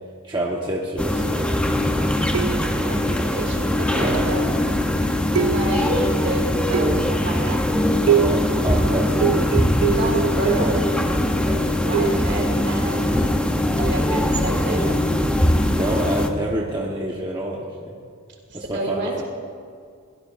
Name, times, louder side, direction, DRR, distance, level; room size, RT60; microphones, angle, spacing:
voice 1, 0.2-2.2 3.8-4.2 8.1-9.4 10.6-10.8 11.3-11.6 12.0-12.2 15.6-18.0 18.5-19.2, right 1 dB, 20° right, -3 dB, 1.2 m, -28 dB
sound 1, 1.0-16.3, left 1 dB, 5° left, 0.7 m, -21 dB
sound 2, 2.3-2.9 4.1-4.5 5.3-6.0 6.7-7.2 8.1-8.5 9.2-10.8 11.9-12.3 13.8-14.0, right 8 dB, 70° right, 0.5 m, -24 dB
voice 2, 2.6-4.5 5.3-7.6 9.9-10.8 11.8-13.4 13.7-14.9 18.5-19.2, right 2 dB, 50° right, 0 dB, 2.8 m, -29 dB
22.5 x 17.0 x 2.6 m, 2.1 s
head